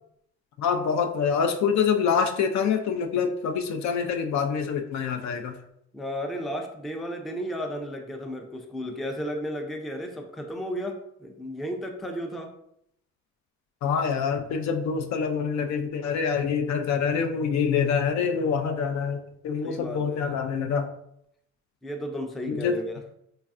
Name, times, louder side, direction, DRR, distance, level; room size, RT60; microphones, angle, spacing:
voice 1, 0.6-5.5 13.8-20.9 22.5-22.7, left 6 dB, 65° left, 6 dB, 0.4 m, -26 dB
voice 2, 5.9-12.5 19.6-20.3 21.8-23.0, equal, ahead, 3 dB, 0.3 m, -34 dB
3.2 x 2.3 x 2.4 m, 0.74 s
cardioid pair, 90°, 30 cm